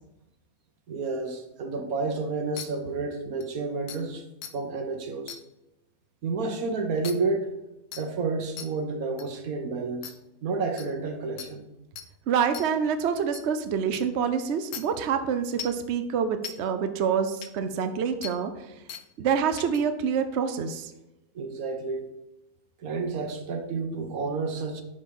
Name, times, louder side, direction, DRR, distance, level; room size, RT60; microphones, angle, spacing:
voice 1, 0.9-4.2 4.5-5.4 6.2-7.5 7.9-10.1 10.4-11.7 21.3-22.1 22.8-24.8, right 3 dB, 75° right, 6 dB, 1.5 m, -30 dB
sound 1, 2.6-2.7 3.4-3.5 3.9-4.0 4.4-4.5 5.3-5.4 7.0-7.1 7.9-8.0 8.6-8.7 9.2-9.3 10.0-10.1 10.8-10.9 11.4-11.5 12.0-12.1 12.5-12.7 13.3-13.4 13.9-14.0 14.7-14.8 15.6-15.8 16.4-16.5 17.4-17.5 18.2-18.3 18.9-19.0 19.6-19.8, left 8 dB, 85° left, 1.3 m, -37 dB
voice 2, 12.3-18.7 19.2-20.9, right 7 dB, 60° right, 8 dB, 0.9 m, -26 dB
10.5 x 4.0 x 5.4 m, 0.94 s
omnidirectional pair, 1.5 m